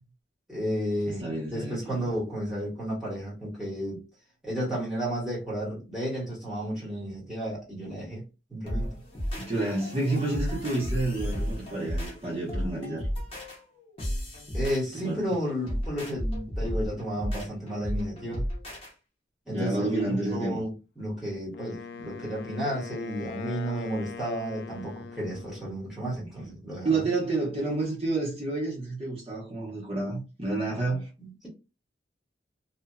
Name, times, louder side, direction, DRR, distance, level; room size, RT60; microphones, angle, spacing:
voice 1, 0.5-4.0 4.4-8.2 8.5-8.9 14.5-18.4 19.5-20.7 21.0-27.0 30.9-31.5, equal, ahead, 1.4 m, -32 dB
voice 2, 1.1-2.1 9.4-13.1 15.0-15.2 19.5-20.6 26.8-31.1, right 2 dB, 35° right, 1.1 m, -29 dB
sound 1, 8.6-18.9, equal, 30° left, 0.9 m, -33 dB
Wind instrument woodwind instrument, 21.5-25.7, left 5 dB, 65° left, 0.3 m, -41 dB
2.7 x 2.5 x 2.3 m
head